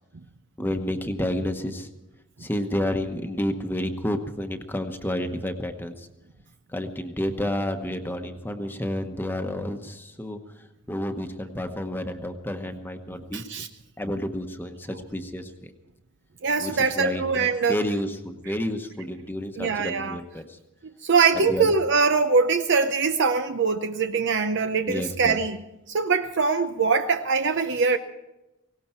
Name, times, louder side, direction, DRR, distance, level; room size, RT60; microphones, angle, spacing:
voice 1, 0.6-1.9 2.4-6.1 6.7-10.4 10.9-13.4 14.0-15.7 16.6-20.6 21.3-21.7 24.9-25.4, left 1 dB, 10° left, 1.1 m, -30 dB
voice 2, 13.3-13.7 16.4-17.8 18.5-18.6 19.6-20.2 20.8-25.6 25.9-28.0, right 5 dB, 60° right, 0.7 m, -23 dB
18.0 x 17.5 x 4.4 m
head